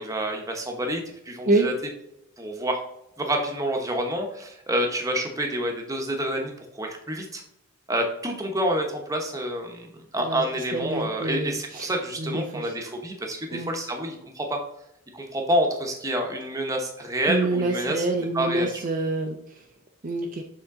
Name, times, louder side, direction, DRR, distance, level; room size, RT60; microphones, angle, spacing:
voice 1, 0.0-1.7 2.4-2.8 3.2-7.4 7.9-9.9 10.1-14.6 15.1-18.0 18.3-18.7, right 1 dB, 15° right, 2 dB, 0.9 m, -28 dB
voice 2, 10.7-11.9 12.2-12.7 13.5-13.7 17.3-19.6 20.0-20.4, right 2 dB, 35° right, 2 dB, 0.5 m, -27 dB
7.1 x 3.7 x 3.7 m, 0.80 s
head